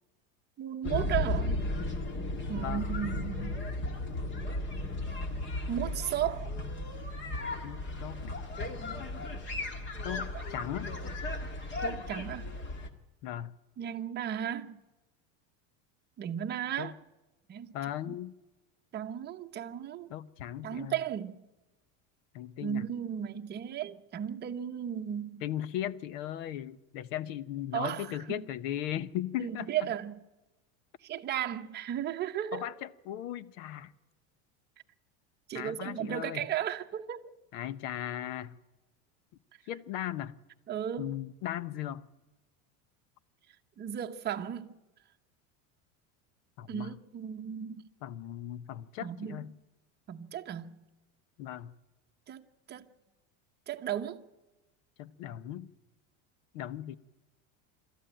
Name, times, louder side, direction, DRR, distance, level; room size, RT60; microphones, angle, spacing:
voice 1, 0.6-1.7 2.5-3.6 5.7-6.5 10.3-10.4 11.8-12.6 13.8-14.8 16.2-16.9 17.5-17.8 18.1-18.2 18.9-20.1 20.6-21.4 22.6-25.4 27.7-28.5 29.4-30.2 31.0-32.7 35.5-37.3 40.7-41.1 43.8-44.7 46.7-47.9 49.0-49.5 50.1-50.8 52.3-52.9 53.7-54.2, right 10 dB, 25° right, 1.0 m, -35 dB
sound 1, 0.8-12.9, left 2 dB, 30° left, 1.9 m, -35 dB
voice 2, 7.6-8.3 10.0-10.9 13.2-13.5 16.8-16.9 17.7-18.3 20.1-21.0 22.3-22.8 25.4-29.7 32.5-33.9 35.5-36.5 37.5-38.6 39.7-40.4 41.0-42.1 46.6-46.9 48.0-49.5 51.4-51.7 55.0-55.7 56.5-57.0, left 12 dB, 70° left, 1.1 m, -37 dB
26.0 x 13.5 x 9.1 m
supercardioid pair, 155°, 40 cm